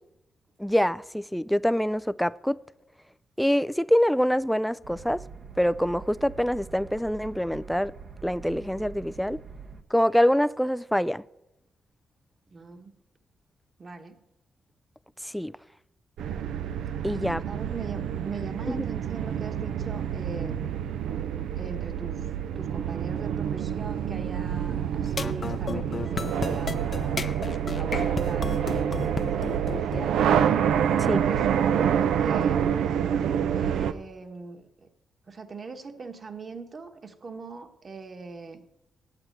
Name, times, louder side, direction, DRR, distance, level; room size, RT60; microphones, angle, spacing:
voice 1, 0.6-2.6 3.4-5.2 5.6-7.9 8.2-9.4 9.9-11.2 15.2-15.5 17.0-17.4 18.7-18.9 31.1-31.2, equal, ahead, 0.3 m, -25 dB
sound 1, 4.8-9.8, right 5 dB, 60° right, 1.0 m, -45 dB
voice 2, 12.5-13.0 13.8-14.2 17.5-20.7 21.6-22.2 22.5-27.3 27.8-30.2 30.9-32.7 33.5-34.9 35.3-38.6, right 4 dB, 40° right, 1.4 m, -40 dB
sound 2, 16.2-33.9, right 9 dB, 85° right, 0.5 m, -27 dB
sound 3, 25.0-30.1, left 5 dB, 45° left, 0.7 m, -33 dB
9.0 x 8.1 x 9.1 m
cardioid pair, 75°, 0 cm